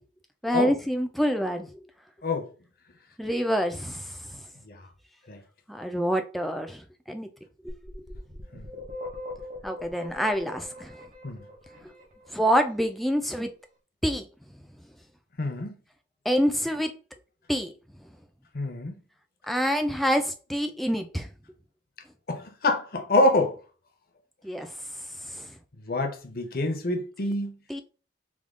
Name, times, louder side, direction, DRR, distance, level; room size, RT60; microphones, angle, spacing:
voice 1, 0.4-1.7 3.2-4.4 5.7-7.3 7.6-7.7 9.6-11.0 12.3-13.5 14.0-14.3 16.3-16.9 17.5-17.7 19.5-21.3 24.4-24.7 25.3-25.5 27.7-27.8, equal, ahead, 0.3 m, -27 dB
sound 1, 7.7-12.5, left 1 dB, 45° right, 1.1 m, -41 dB
voice 2, 15.4-15.7 18.5-18.9 22.3-23.6 25.9-27.5, left 2 dB, 50° left, 0.7 m, -26 dB
3.5 x 2.3 x 3.6 m
head